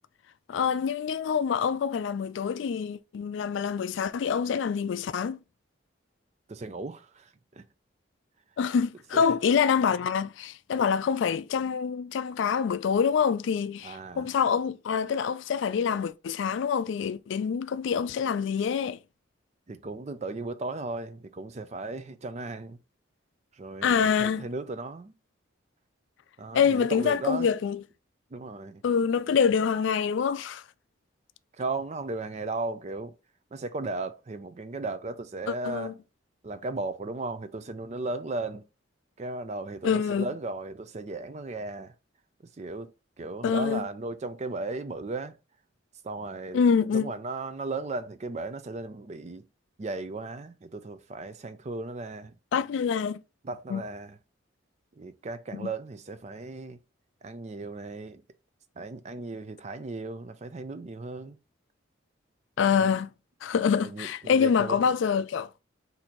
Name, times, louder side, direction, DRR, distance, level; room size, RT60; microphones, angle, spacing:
voice 1, 0.5-5.4 8.6-19.0 23.8-24.5 26.5-27.8 28.8-30.6 35.5-35.9 39.8-40.3 43.4-43.9 46.5-47.1 52.5-53.2 53.7-53.8 55.5-55.7 62.6-63.1 63.4-65.5, left 6 dB, 65° left, 0.3 m, -26 dB
voice 2, 6.5-7.6 9.1-9.4 13.8-14.3 19.7-22.8 23.5-25.1 26.4-27.5 28.3-28.8 31.6-33.1 33.5-35.9 36.4-38.6 39.2-41.9 42.6-42.9 43.2-45.4 46.0-46.6 46.9-49.4 49.8-52.3 53.4-54.2 55.0-56.8 57.2-58.2 58.8-61.4 62.7-62.9 63.8-64.8, right 3 dB, 35° right, 0.4 m, -36 dB
4.2 x 2.7 x 4.3 m
head